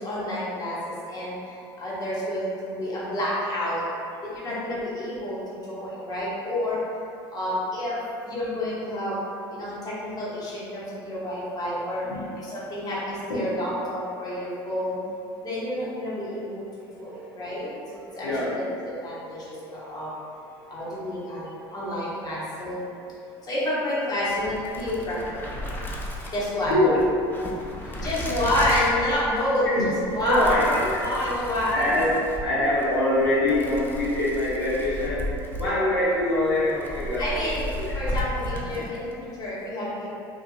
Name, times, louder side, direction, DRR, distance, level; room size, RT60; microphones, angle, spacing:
voice 1, 0.0-3.8 4.2-6.8 7.3-8.0 8.3-9.2 9.5-12.0 12.4-15.0 15.4-16.7 16.9-17.7 18.1-18.3 18.6-18.7 19.0-20.1 20.7-22.9 23.4-25.4 26.3-26.7 27.8-31.9 37.2-37.7 37.9-40.1, left 1 dB, 30° left, -8 dB, 0.9 m, -29 dB
voice 2, 4.2-4.6 5.8-6.0 6.3-6.4 7.2-7.4 12.1-12.3 13.3-13.4 16.8-17.8 18.0-20.8 26.6-27.3 27.9-28.0 29.6-29.8 30.2-31.1 31.7-32.1 32.4-37.4 37.8-38.0, left 1 dB, 90° left, -9 dB, 0.7 m, -26 dB
sound 1, 24.3-39.2, left 1 dB, 15° left, 0.4 m, -35 dB
2.6 x 2.5 x 2.3 m, 2.5 s
hypercardioid pair, 75°, 13 cm